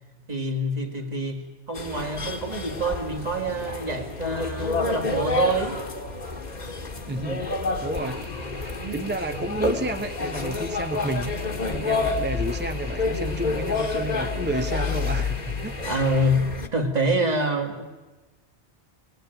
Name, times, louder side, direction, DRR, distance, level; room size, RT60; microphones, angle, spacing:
voice 1, 0.3-5.8 8.7-9.1 15.8-17.8, right 1 dB, 40° right, 3 dB, 2.2 m, -26 dB
sound 1, 1.7-16.7, left 3 dB, 40° left, 1.6 m, -29 dB
voice 2, 7.1-11.4 11.6-15.7, right 2 dB, 10° right, 5 dB, 0.8 m, -31 dB
sound 2, 7.9-16.3, left 1 dB, 80° left, 2.2 m, -44 dB
22.0 x 18.5 x 9.1 m, 1.2 s
omnidirectional pair, 1.1 m